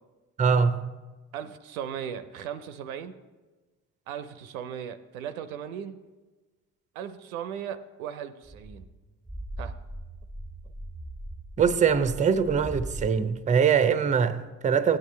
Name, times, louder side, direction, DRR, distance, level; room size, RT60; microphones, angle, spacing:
voice 1, 0.4-0.9 11.6-15.0, right 6 dB, 20° right, 0.5 m, -23 dB
voice 2, 1.3-3.1 4.1-6.0 6.9-8.9 9.6-9.7 10.6-10.7, right 8 dB, 80° right, 0.5 m, -37 dB
sound 1, 8.4-13.1, right 1 dB, 5° left, 1.0 m, -39 dB
14.5 x 9.4 x 3.2 m
figure-of-eight pair, 45°, 41 cm